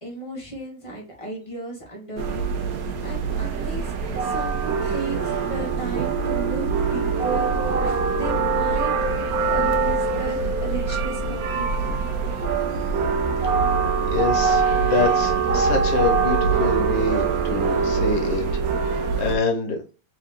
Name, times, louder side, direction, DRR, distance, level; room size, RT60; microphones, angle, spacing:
voice 1, 0.0-5.2 5.5-7.5 8.1-8.9 9.4-12.3, right 2 dB, 20° left, -2 dB, 0.9 m, -35 dB
sound 1, 2.2-19.4, right 5 dB, 65° right, 0.9 m, -23 dB
voice 2, 14.1-18.4 19.0-19.8, left 3 dB, 65° left, 4 dB, 1.5 m, -26 dB
3.4 x 3.3 x 3.4 m, 0.33 s
omnidirectional pair, 2.3 m